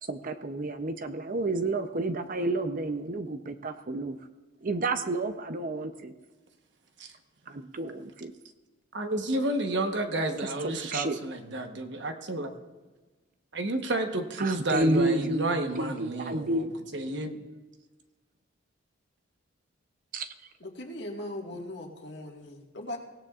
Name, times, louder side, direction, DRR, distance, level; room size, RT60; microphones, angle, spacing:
voice 1, 0.0-4.2 4.6-6.1 7.5-8.3 10.4-11.2 14.4-16.7 20.1-20.3, right 2 dB, 45° right, 9 dB, 0.6 m, -30 dB
voice 2, 8.9-12.5 13.5-16.6 16.9-17.4, right 2 dB, 60° right, 5 dB, 1.1 m, -31 dB
voice 3, 20.6-23.0, left 1 dB, 60° left, 0 dB, 1.8 m, -39 dB
24.0 x 17.0 x 2.5 m, 1.2 s
head